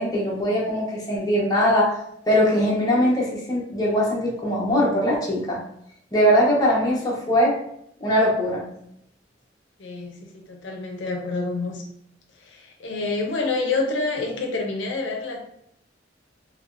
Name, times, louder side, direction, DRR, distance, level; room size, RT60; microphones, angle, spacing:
voice 1, 0.0-2.0 2.3-5.6 6.1-7.6 8.0-8.7, equal, 20° left, -4 dB, 0.9 m, -21 dB
voice 2, 9.8-11.8 12.4-15.4, left 3 dB, 85° left, 1 dB, 0.6 m, -28 dB
3.2 x 2.8 x 2.5 m, 0.72 s
head